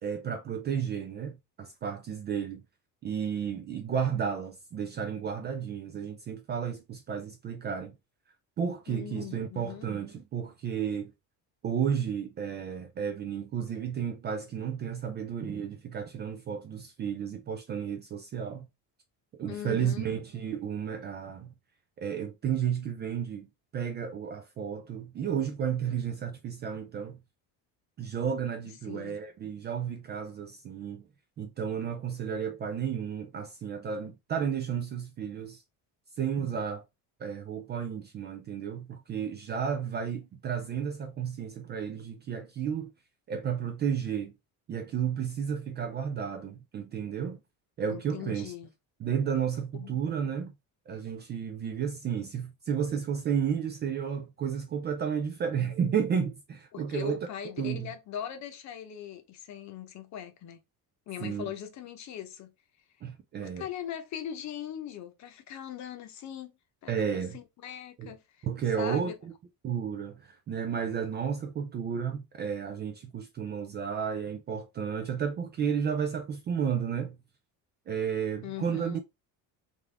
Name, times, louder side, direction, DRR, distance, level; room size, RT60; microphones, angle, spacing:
voice 1, 0.0-2.6 3.0-7.9 8.6-11.1 11.6-18.7 19.4-21.5 22.0-23.5 23.7-27.2 28.0-31.0 31.4-35.6 36.2-36.8 37.2-42.9 43.3-44.3 44.7-47.4 47.8-48.5 49.0-50.5 50.9-57.3 57.6-57.9 61.2-61.4 63.0-63.6 66.9-67.4 68.0-68.1 68.4-69.1 69.6-77.2 77.9-79.0, right 7 dB, 30° right, 0.3 m, -32 dB
voice 2, 8.9-9.9 19.5-20.1 28.8-29.2 47.9-48.7 49.7-50.0 56.7-60.6 61.1-62.5 63.4-66.5 66.8-68.5 68.8-69.1 78.4-79.0, left 10 dB, 45° left, 0.8 m, -40 dB
3.7 x 3.4 x 3.3 m
cardioid pair, 180°, 40 cm